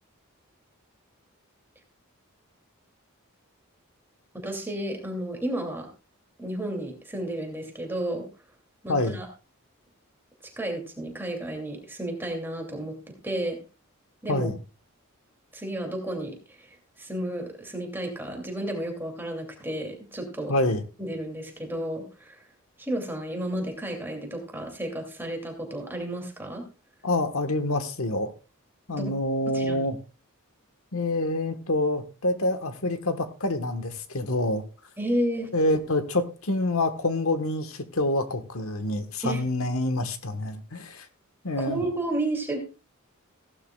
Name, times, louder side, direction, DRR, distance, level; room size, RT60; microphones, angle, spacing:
voice 1, 4.4-5.9 6.4-8.2 8.8-9.3 10.6-12.9 13.2-13.6 14.2-14.5 15.5-16.7 17.0-20.5 21.0-22.4 22.8-26.6 29.0-29.1 29.5-29.8 35.0-35.5 39.2-39.4 41.6-42.6, right 1 dB, 10° right, 2.6 m, -32 dB
voice 2, 8.9-9.2 14.3-14.6 20.5-20.8 27.0-28.3 28.9-30.0 30.9-34.6 35.5-41.1 41.4-41.8, left 2 dB, 80° left, 1.3 m, -27 dB
16.0 x 11.5 x 2.3 m
head